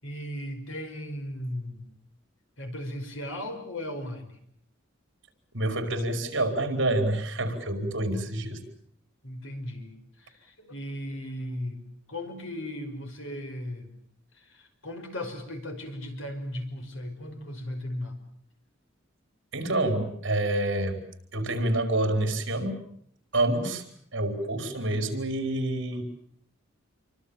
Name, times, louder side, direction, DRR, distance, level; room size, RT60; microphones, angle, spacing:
voice 1, 0.0-1.9 2.6-4.4 9.2-9.9 10.2-11.8 12.1-13.9 14.3-18.1, left 1 dB, 75° left, 5 dB, 5.5 m, -37 dB
voice 2, 5.5-8.6 19.5-21.0 21.3-22.8 23.3-23.8 24.1-26.0, right 1 dB, 60° right, 7 dB, 4.9 m, -27 dB
27.5 x 24.5 x 7.3 m, 0.66 s
head